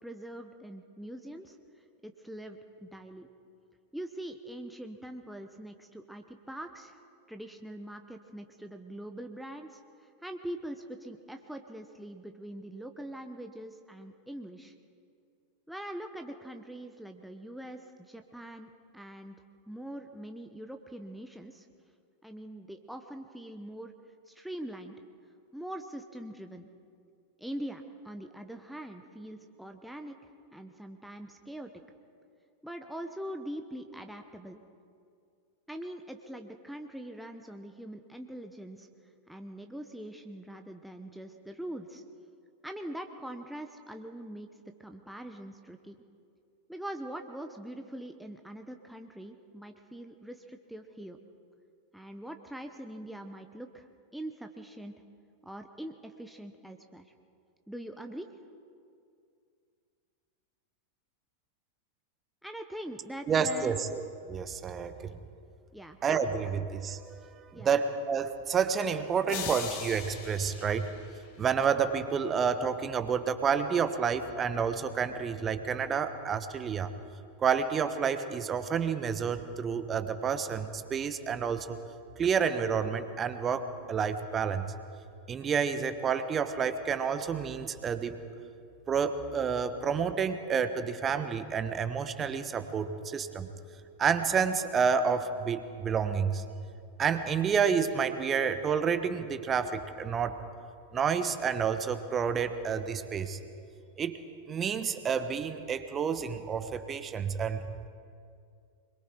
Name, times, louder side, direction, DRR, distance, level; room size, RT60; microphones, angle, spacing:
voice 1, 0.0-1.6 2.0-3.3 3.9-7.0 7.3-14.7 15.7-19.4 19.7-21.7 22.2-23.9 24.3-24.9 25.5-26.7 27.4-30.2 30.5-31.7 32.6-34.6 35.7-38.9 39.3-42.0 42.6-44.5 44.8-46.0 46.7-51.2 51.9-53.9 54.1-54.9 55.4-57.1 57.7-58.3 62.4-63.8 65.7-66.0 67.5-67.8, right 1 dB, ahead, 4 dB, 1.0 m, -43 dB
voice 2, 63.3-64.0 64.3-65.2 66.0-71.0 71.4-76.9 77.4-81.8 82.2-84.7 85.3-88.2 88.9-93.5 94.0-96.4 97.0-100.4 100.9-103.4 104.0-104.2 104.5-107.9, right 6 dB, 25° right, 10 dB, 1.2 m, -29 dB
sound 1, 69.3-71.6, left 7 dB, 50° left, 2.6 m, -40 dB
25.5 x 22.5 x 4.6 m, 2.3 s
figure-of-eight pair, 90°, 0 cm